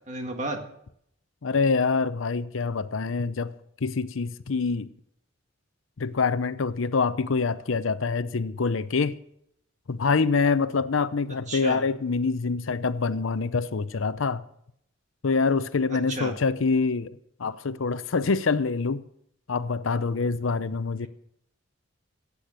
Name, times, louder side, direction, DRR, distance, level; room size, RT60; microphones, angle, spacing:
voice 1, 0.1-0.6 11.5-11.8 15.9-16.3 21.0-21.1, right 1 dB, 35° right, 2.0 m, -33 dB
voice 2, 1.4-3.5 3.8-4.9 6.0-9.1 9.9-14.4 15.2-17.1 17.4-19.0 19.5-21.1, left 4 dB, 75° left, 0.6 m, -25 dB
16.0 x 8.5 x 6.4 m
head